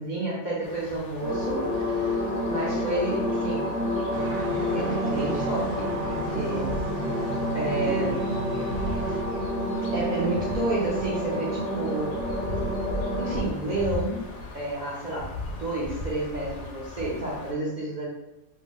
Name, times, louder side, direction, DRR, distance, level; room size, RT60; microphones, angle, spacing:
voice 1, 0.0-2.2 2.5-3.7 4.7-6.8 7.5-8.3 9.9-12.2 13.2-14.3 14.5-18.1, right 2 dB, 60° right, -5 dB, 0.5 m, -30 dB
sound 1, 0.6-17.5, left 1 dB, 65° left, 0.8 m, -38 dB
sound 2, 1.2-13.4, equal, 10° left, 0.6 m, -29 dB
sound 3, 4.1-9.2, right 2 dB, 75° right, 0.9 m, -36 dB
2.6 x 2.0 x 3.5 m, 0.91 s
omnidirectional pair, 1.5 m